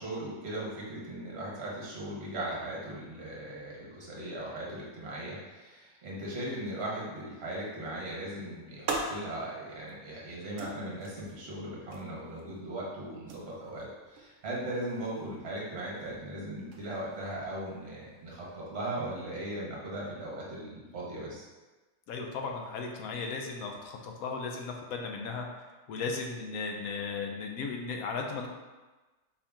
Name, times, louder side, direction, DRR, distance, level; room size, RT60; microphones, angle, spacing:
voice 1, 0.0-21.5, right 1 dB, 45° right, -4 dB, 1.2 m, -38 dB
sound 1, 8.1-18.6, right 2 dB, 65° right, 0.9 m, -44 dB
voice 2, 22.1-25.5 25.9-28.5, left 4 dB, 70° left, 2 dB, 1.0 m, -36 dB
4.4 x 2.8 x 3.5 m, 1.2 s
omnidirectional pair, 1.6 m